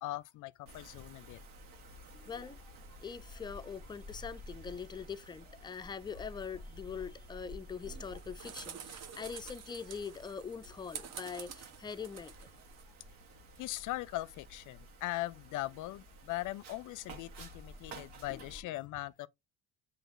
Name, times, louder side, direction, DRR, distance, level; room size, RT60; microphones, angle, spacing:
voice 1, 0.0-1.4 13.6-19.3, left 17 dB, 65° left, 0.5 m, -40 dB
Wind, 0.7-18.6, equal, 90° right, 1.2 m, -52 dB
voice 2, 2.1-2.6 3.0-12.3 17.9-18.0 18.3-18.5, left 6 dB, 15° left, 0.4 m, -43 dB
sound 1, 7.8-12.8, right 7 dB, 50° right, 0.8 m, -49 dB
7.8 x 2.6 x 2.5 m
supercardioid pair, 80°, 33 cm